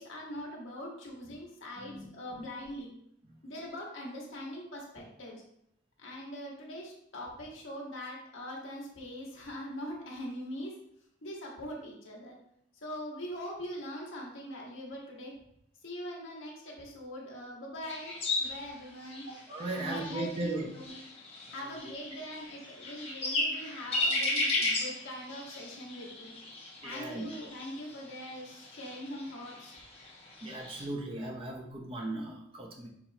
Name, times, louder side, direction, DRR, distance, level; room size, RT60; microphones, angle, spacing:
voice 1, 0.0-2.9 3.4-5.4 6.0-10.7 11.2-12.4 12.8-15.3 15.8-19.3 19.7-20.9 21.5-26.3 26.8-29.8, left 1 dB, 70° left, -2 dB, 1.2 m, -42 dB
voice 2, 1.8-2.1 2.3-2.4 3.2-3.4 19.3-20.7 21.9-22.0 26.8-27.3 30.4-32.9, right 2 dB, 25° right, 0 dB, 0.6 m, -37 dB
sound 1, 17.8-30.9, left 2 dB, 30° left, 0.9 m, -36 dB
5.8 x 3.0 x 2.8 m, 0.71 s
head